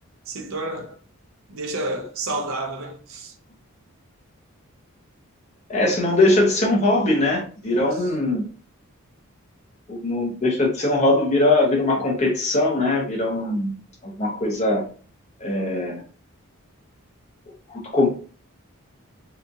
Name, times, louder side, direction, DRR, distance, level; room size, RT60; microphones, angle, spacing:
voice 1, 0.3-1.0 1.5-3.3 7.6-8.0, right 2 dB, 65° right, 0.6 m, -30 dB
voice 2, 5.7-8.5 9.9-13.7 14.0-14.9 15.4-16.0 17.7-18.1, left 2 dB, 30° left, 0.7 m, -21 dB
2.8 x 2.4 x 2.6 m
head